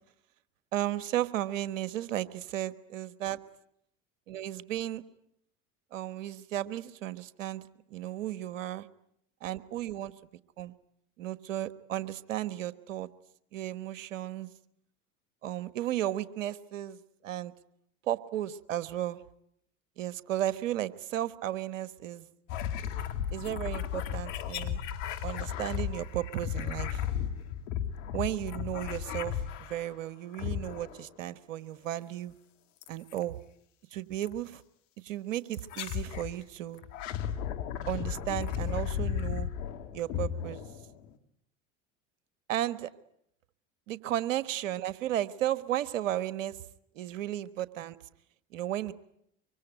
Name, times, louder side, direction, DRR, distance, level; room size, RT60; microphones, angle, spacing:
voice 1, 0.7-3.4 4.3-5.0 5.9-7.6 7.9-8.9 9.4-10.1 10.6-10.7 11.2-13.1 13.5-14.5 15.4-17.5 18.1-19.2 20.0-22.3 23.3-24.8 25.2-27.0 28.1-29.4 29.7-32.3 32.9-33.4 33.9-34.6 35.0-36.8 37.9-39.5 39.9-40.6 42.5-42.9 43.9-46.6 46.9-48.0 48.5-48.9, right 12 dB, 75° right, 14 dB, 1.4 m, -34 dB
sound 1, 22.5-29.9 30.3-31.1 32.8-33.2 34.2-34.4 35.5-36.3 36.8-41.1, left 9 dB, 70° left, 2.5 m, -35 dB
25.0 x 24.5 x 9.1 m, 0.75 s
hypercardioid pair, 75°, 38 cm